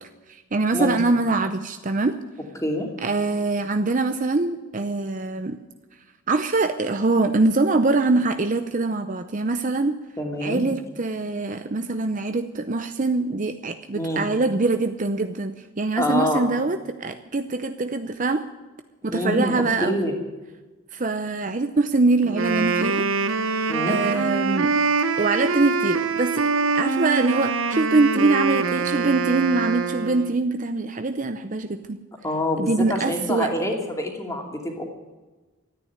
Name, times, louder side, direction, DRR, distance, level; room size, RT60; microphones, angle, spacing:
voice 1, 0.0-2.2 3.0-5.6 6.3-10.0 10.4-18.4 19.0-20.0 20.9-23.1 23.9-24.9 25.2-26.4 26.7-32.0 32.6-33.5, right 3 dB, 40° right, 8 dB, 0.6 m, -23 dB
voice 2, 10.2-10.6 13.9-14.3 16.0-16.4 19.1-20.1 23.7-24.0 32.2-34.8, left 1 dB, 15° left, 1 dB, 2.6 m, -26 dB
Wind instrument woodwind instrument, 22.2-30.4, right 4 dB, 80° right, 0.9 m, -24 dB
14.0 x 9.7 x 9.7 m, 1.2 s
head